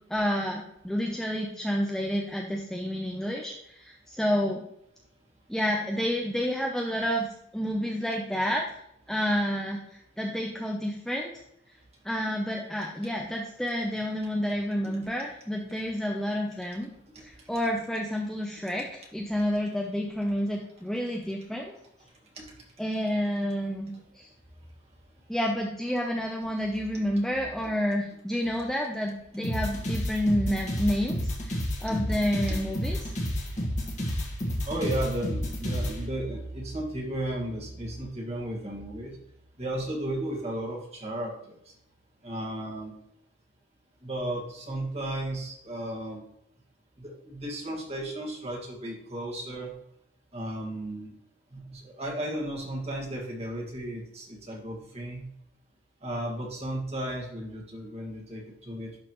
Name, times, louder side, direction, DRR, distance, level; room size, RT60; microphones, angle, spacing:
voice 1, 0.1-4.6 5.5-7.3 7.5-8.7 9.1-11.4 12.0-16.9 17.2-21.7 22.8-24.3 25.3-33.1, equal, ahead, 0 dB, 0.5 m, -29 dB
sound 1, 29.4-36.0, equal, 35° left, 1.6 m, -30 dB
voice 2, 34.6-39.2 39.6-41.7 42.2-42.9 44.0-46.2 47.0-49.7 50.3-51.1 51.5-55.2 56.0-59.0, right 1 dB, 30° right, -2 dB, 1.8 m, -34 dB
11.0 x 4.1 x 3.0 m, 0.74 s
head